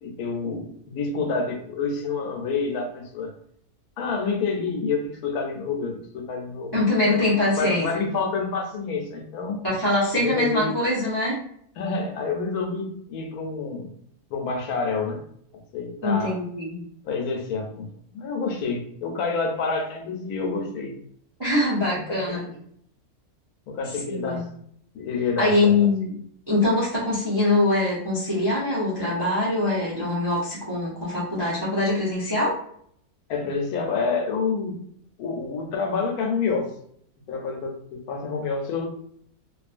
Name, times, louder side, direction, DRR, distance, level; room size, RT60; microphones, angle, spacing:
voice 1, 0.0-3.3 4.0-7.3 7.6-9.6 10.1-10.7 11.8-13.9 14.3-15.2 15.7-16.4 17.0-20.9 21.9-22.5 23.7-24.5 24.9-25.7 33.3-34.8 35.2-36.7 37.3-38.9, left 4 dB, 80° left, 3 dB, 1.1 m, -28 dB
voice 2, 6.7-7.9 9.6-11.4 16.0-16.8 21.4-22.4 24.1-24.4 25.4-26.1 26.5-32.5, left 2 dB, 35° right, -7 dB, 0.4 m, -23 dB
2.6 x 2.3 x 2.4 m, 0.65 s
omnidirectional pair, 1.6 m